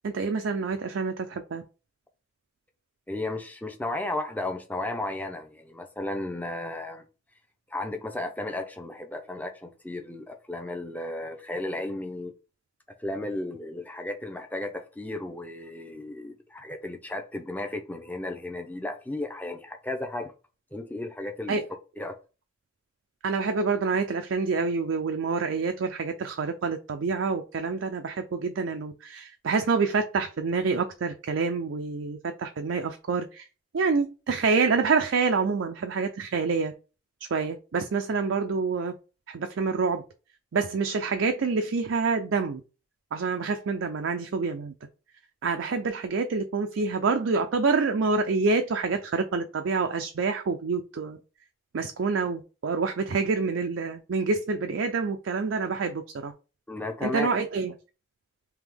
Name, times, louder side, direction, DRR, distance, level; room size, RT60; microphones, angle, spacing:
voice 1, 0.0-1.6 21.5-21.6 23.2-33.4 33.7-36.7 37.3-38.9 39.3-40.0 40.5-42.6 43.1-44.7 45.4-51.2 51.7-56.3 57.0-57.7, right 4 dB, 85° right, 0.4 m, -27 dB
voice 2, 3.1-7.0 7.7-12.3 13.0-20.3 20.7-21.6 22.0-22.2 56.7-57.3, left 2 dB, 10° left, 0.5 m, -34 dB
3.5 x 2.9 x 3.4 m
head